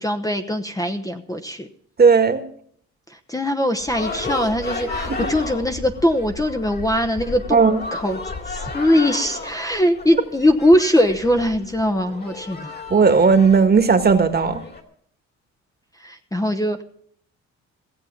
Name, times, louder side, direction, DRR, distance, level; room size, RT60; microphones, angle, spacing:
voice 1, 0.0-1.7 3.1-8.2 8.5-12.7 16.0-16.8, left 1 dB, 10° left, 6 dB, 1.0 m, -21 dB
voice 2, 2.0-2.4 5.1-5.2 7.5-7.8 12.9-14.6, right 5 dB, 30° right, 9 dB, 1.6 m, -15 dB
sound 1, 3.8-14.8, left 3 dB, 35° left, 2.4 m, -33 dB
16.5 x 7.5 x 7.2 m, 0.62 s
cardioid pair, 90°, 30 cm